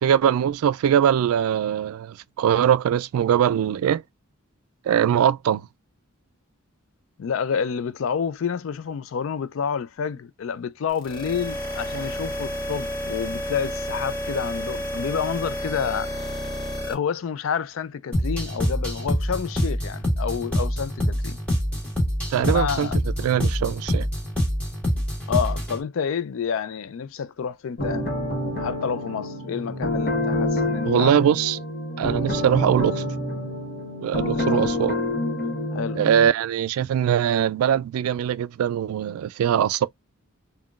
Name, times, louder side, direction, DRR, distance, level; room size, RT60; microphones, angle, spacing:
voice 1, 0.0-4.0 4.9-5.7 22.3-22.9 23.2-24.1 30.9-31.6 32.0-33.0 34.0-35.0 36.0-39.9, right 9 dB, 85° right, 0.3 m, -21 dB
voice 2, 7.2-16.1 16.8-21.4 22.4-23.0 25.3-28.1 28.6-31.1 34.3-34.7 35.7-36.0, left 7 dB, 65° left, 0.4 m, -29 dB
sound 1, 10.9-16.9, equal, 25° left, 1.1 m, -31 dB
sound 2, 18.1-25.8, equal, 5° left, 1.4 m, -25 dB
sound 3, 27.8-36.3, left 1 dB, 45° left, 1.0 m, -27 dB
3.7 x 2.2 x 2.3 m
head